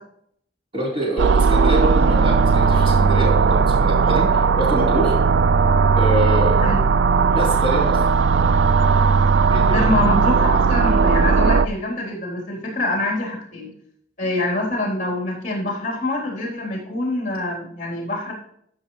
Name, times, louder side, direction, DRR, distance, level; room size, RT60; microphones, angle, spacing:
voice 1, 0.7-5.2 5.9-6.7 7.3-8.0 9.5-9.9, right 1 dB, 30° right, -5 dB, 4.5 m, -25 dB
sound 1, 1.2-11.7, right 5 dB, 75° right, 0.4 m, -17 dB
voice 2, 9.7-13.7 14.2-18.3, left 2 dB, 40° left, -2 dB, 3.8 m, -25 dB
14.0 x 7.5 x 3.2 m, 0.69 s
head